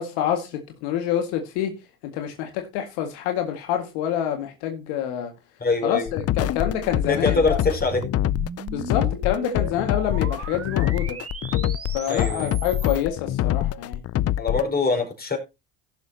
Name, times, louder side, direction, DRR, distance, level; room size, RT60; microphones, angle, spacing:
voice 1, 0.0-1.8 2.0-5.3 5.8-7.6 8.7-11.2 11.9-14.0, left 10 dB, 90° left, 2.0 m, -27 dB
voice 2, 5.6-6.1 7.1-8.0 12.1-12.5 14.4-15.4, left 4 dB, 25° left, 5.1 m, -23 dB
sound 1, 6.1-14.7, left 13 dB, 40° left, 0.5 m, -25 dB
sound 2, 6.3-13.0, right 5 dB, 35° right, 2.4 m, -38 dB
17.0 x 6.9 x 2.8 m
supercardioid pair, 90°, 38 cm